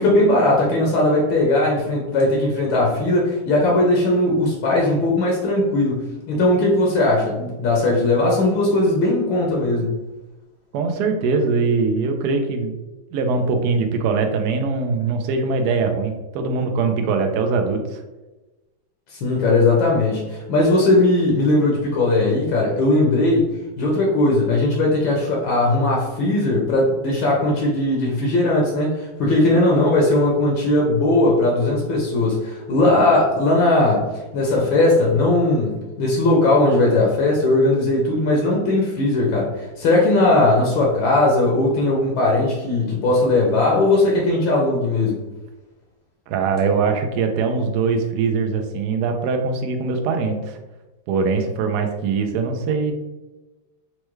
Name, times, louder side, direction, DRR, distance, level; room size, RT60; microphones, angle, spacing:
voice 1, 0.0-9.9 19.1-23.5 23.8-34.1 34.3-45.2, left 2 dB, 70° left, -2 dB, 1.3 m, -18 dB
voice 2, 10.7-12.7 13.1-18.0 46.3-50.6 51.1-52.9, right 4 dB, 85° right, 4 dB, 0.8 m, -22 dB
4.5 x 2.2 x 3.0 m, 1.1 s
omnidirectional pair, 2.3 m